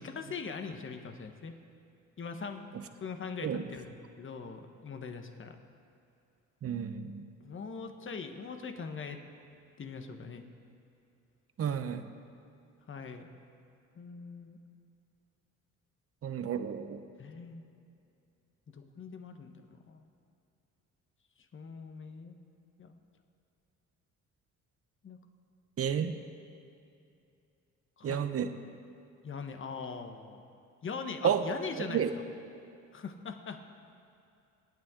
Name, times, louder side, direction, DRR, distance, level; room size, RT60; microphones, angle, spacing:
voice 1, 0.0-1.5 2.2-2.6 3.0-5.6 7.4-9.2 9.8-10.5 12.9-13.3 13.9-14.6 17.2-17.6 18.7-20.1 21.5-22.3 22.8-23.0 25.0-25.2 28.0-28.3 29.2-30.4 30.8-32.0 32.9-33.6, left 5 dB, 40° left, 6 dB, 1.3 m, -41 dB
voice 2, 6.6-7.3 11.6-12.1 16.2-17.0 25.8-26.2 28.0-28.5 31.2-31.5 31.9-32.1, right 8 dB, 50° right, 9 dB, 0.9 m, -31 dB
27.0 x 9.1 x 3.8 m, 2.5 s
cardioid pair, 90°, 30 cm